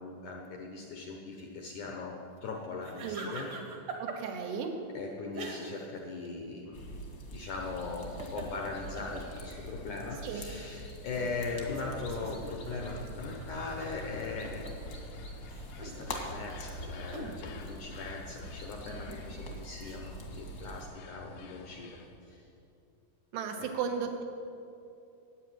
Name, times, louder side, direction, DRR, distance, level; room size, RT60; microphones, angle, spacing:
voice 1, 0.0-2.1 2.4-3.5 4.9-6.9 7.3-14.7 15.8-22.5 23.6-23.7, left 3 dB, 70° left, 1 dB, 1.8 m, -40 dB
sound 1, 2.8-4.5 5.3-6.0 6.2-6.3 7.9-10.0 10.5-10.6 11.1-14.9 15.3-17.4 18.4-20.0, right 3 dB, 60° right, 1.5 m, -44 dB
voice 2, 3.0-3.6 4.0-4.8 10.2-10.4 23.3-24.2, right 6 dB, 85° right, 3 dB, 3.4 m, -35 dB
sound 2, 6.7-20.9, equal, 50° left, 1.1 m, -44 dB
sound 3, 11.2-22.2, left 3 dB, 90° left, 3.3 m, -50 dB
12.0 x 8.9 x 9.1 m, 2.7 s
omnidirectional pair, 4.8 m